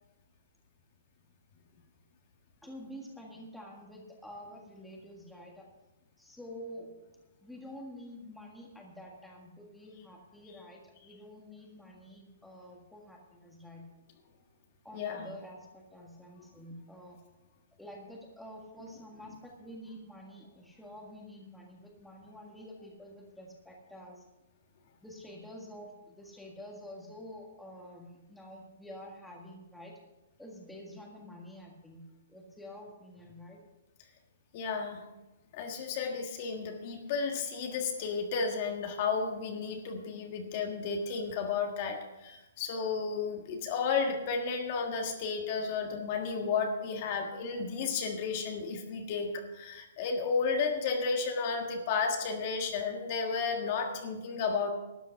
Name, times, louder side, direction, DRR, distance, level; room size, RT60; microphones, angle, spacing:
voice 1, 2.6-5.7 6.2-6.9 7.4-13.9 14.8-17.2 17.8-24.2 25.0-29.9 30.4-32.0 32.3-33.6, equal, ahead, -2 dB, 1.7 m, -48 dB
voice 2, 14.9-15.3 34.5-35.0 35.5-54.7, left 5 dB, 40° left, 3 dB, 1.6 m, -33 dB
12.5 x 9.0 x 5.8 m, 1.0 s
hypercardioid pair, 160°, 0 cm